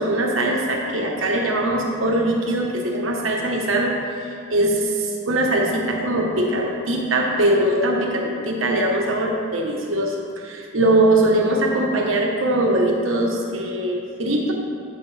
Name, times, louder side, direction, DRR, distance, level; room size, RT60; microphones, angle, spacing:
voice 1, 0.0-3.9 4.5-14.5, right 1 dB, 85° right, 0 dB, 1.3 m, -21 dB
13.0 x 6.0 x 3.4 m, 2.5 s
head